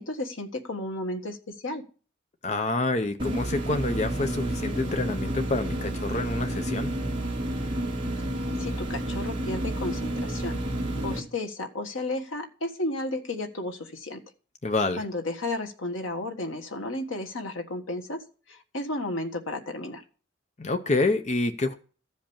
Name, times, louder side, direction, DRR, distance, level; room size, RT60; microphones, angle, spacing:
voice 1, 0.0-1.8 8.6-10.6 11.0-14.2 15.0-18.2 18.5-20.0, left 2 dB, 85° left, 1.5 m, -33 dB
voice 2, 2.4-6.9 14.6-15.0 20.6-21.7, left 2 dB, 35° left, 0.6 m, -27 dB
sound 1, 3.2-11.2, right 1 dB, 25° right, 2.3 m, -30 dB
14.0 x 5.2 x 7.1 m
head